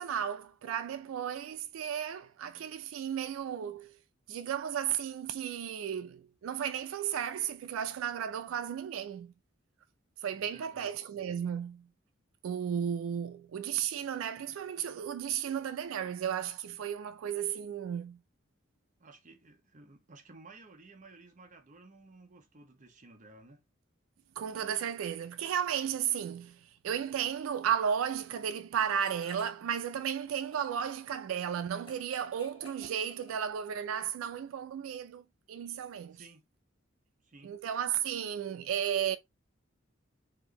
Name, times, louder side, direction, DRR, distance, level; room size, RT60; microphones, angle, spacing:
voice 1, 0.0-4.0 4.3-9.3 10.2-11.9 12.4-18.2 24.4-35.2 35.5-36.2 37.4-39.2, right 8 dB, 90° right, 0.3 m, -34 dB
voice 2, 10.3-10.9 19.0-23.6 36.1-36.4 37.2-37.5, right 3 dB, 40° right, 0.8 m, -55 dB
sound 1, 29.0-29.7 30.0-33.9, left 3 dB, 25° left, 1.3 m, -56 dB
4.4 x 2.6 x 2.9 m
head